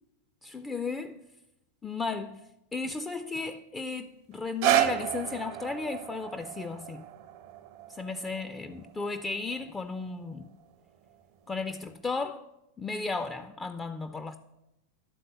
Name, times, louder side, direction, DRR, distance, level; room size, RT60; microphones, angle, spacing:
voice 1, 0.4-1.2 1.8-2.4 2.7-7.0 8.0-10.5 11.5-12.4 12.8-14.4, left 4 dB, 15° left, 0.4 m, -34 dB
sound 1, 4.3-10.4 11.1-11.2, right 13 dB, 45° right, 0.5 m, -32 dB
11.5 x 3.9 x 6.6 m
figure-of-eight pair, 90°, 0 cm